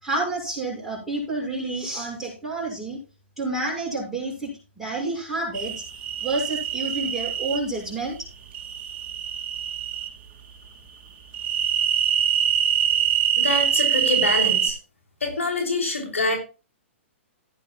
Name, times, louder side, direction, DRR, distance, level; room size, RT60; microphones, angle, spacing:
voice 1, 0.0-3.0 3.4-5.8 6.2-8.3, right 2 dB, ahead, -4 dB, 6.6 m, -29 dB
sound 1, 5.5-7.6 8.5-10.1 11.3-14.7, right 9 dB, 30° right, 2.0 m, -24 dB
voice 2, 13.4-14.8 15.2-16.4, left 2 dB, 90° left, 3 dB, 3.2 m, -25 dB
16.0 x 9.2 x 2.3 m, 0.32 s
hypercardioid pair, 130°, 7 cm